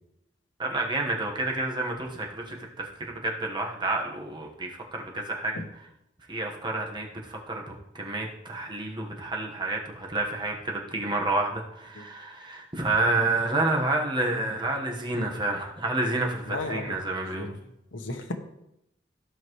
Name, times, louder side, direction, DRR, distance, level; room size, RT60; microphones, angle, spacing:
voice 1, 0.6-2.9 3.2-5.5 6.3-17.5, right 2 dB, 25° right, 0 dB, 1.3 m, -29 dB
voice 2, 16.5-17.0 17.2-17.6 17.9-18.3, left 2 dB, 85° left, 4 dB, 1.1 m, -35 dB
14.5 x 5.7 x 3.2 m, 0.83 s
head